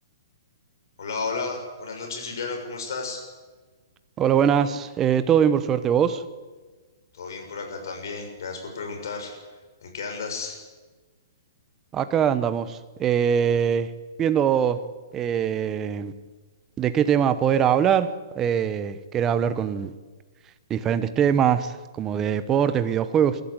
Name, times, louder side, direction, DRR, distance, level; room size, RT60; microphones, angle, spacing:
voice 1, 1.0-3.2 7.1-9.3 9.8-10.6, left 4 dB, 65° left, 3 dB, 6.9 m, -33 dB
voice 2, 4.2-6.2 11.9-13.9 14.2-14.8 15.1-16.1 16.8-18.1 18.3-19.9 20.7-23.4, right 8 dB, 15° right, 12 dB, 0.9 m, -22 dB
23.0 x 13.5 x 8.9 m, 1.3 s
hypercardioid pair, 165°, 2 cm